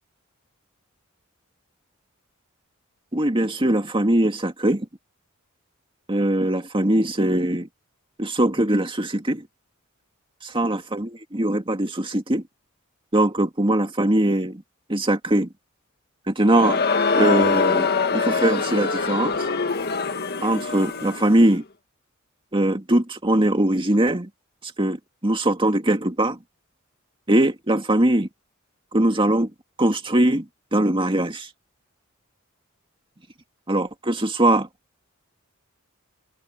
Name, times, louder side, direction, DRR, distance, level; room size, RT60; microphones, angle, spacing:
voice 1, 3.1-4.9 6.1-7.7 8.2-9.5 10.5-12.4 13.1-14.6 14.9-15.5 16.3-16.8 17.1-19.4 20.4-21.6 22.5-24.3 24.6-26.4 27.3-28.3 28.9-29.5 29.8-31.5 33.7-34.7, right 1 dB, 25° right, 2.1 m, -21 dB
Crowd, 16.4-21.4, left 4 dB, 50° left, 1.6 m, -23 dB
head